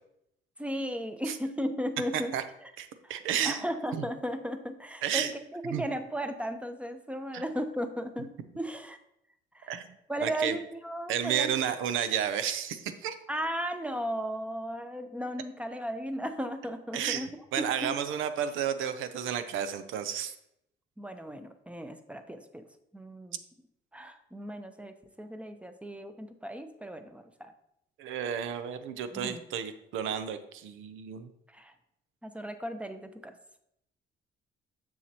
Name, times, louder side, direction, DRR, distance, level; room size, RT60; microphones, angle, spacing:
voice 1, 0.6-2.3 3.0-3.1 3.4-8.3 8.6-9.0 9.5-9.8 10.1-11.5 13.3-17.3 17.6-17.9 21.0-22.6 22.9-23.4 23.9-27.5 29.1-29.4 31.5-31.7 32.2-33.4, equal, 5° right, 8 dB, 0.7 m, -36 dB
voice 2, 2.1-2.4 2.8-3.6 3.9-4.0 5.0-5.3 5.7-5.8 7.3-7.4 9.7-9.9 10.2-10.6 11.1-13.2 16.9-17.3 17.5-20.3 28.0-31.3, right 9 dB, 90° right, 11 dB, 0.6 m, -32 dB
7.1 x 6.5 x 2.9 m, 0.79 s
cardioid pair, 90°, 20 cm